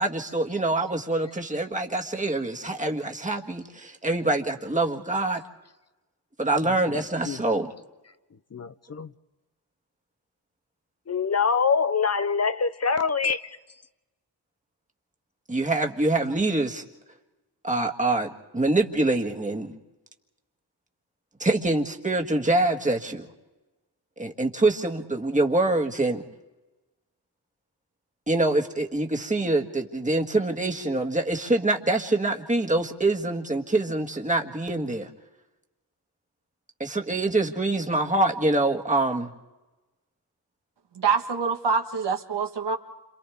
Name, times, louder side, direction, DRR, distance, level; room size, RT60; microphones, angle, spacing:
voice 1, 0.0-5.4 6.4-7.7 15.5-16.8 17.6-19.7 21.4-23.3 24.2-26.2 28.3-35.1 36.8-39.3, right 2 dB, 20° right, 2 dB, 1.7 m, -25 dB
voice 2, 11.1-13.4, left 5 dB, 40° left, 12 dB, 0.6 m, -24 dB
voice 3, 40.9-42.8, right 5 dB, 80° right, 5 dB, 1.6 m, -25 dB
29.5 x 27.0 x 3.6 m, 1.1 s
wide cardioid pair, 100°, 41 cm